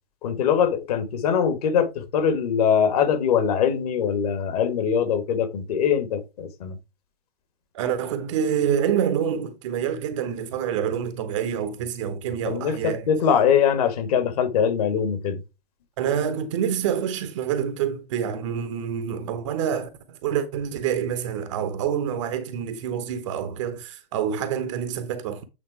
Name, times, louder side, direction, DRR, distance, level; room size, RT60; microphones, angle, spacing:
voice 1, 0.2-6.7 12.4-15.4, left 7 dB, 40° left, 1.5 m, -22 dB
voice 2, 7.7-13.1 16.0-25.4, right 8 dB, 30° right, 0.9 m, -27 dB
8.7 x 3.8 x 4.6 m
figure-of-eight pair, 120°, 31 cm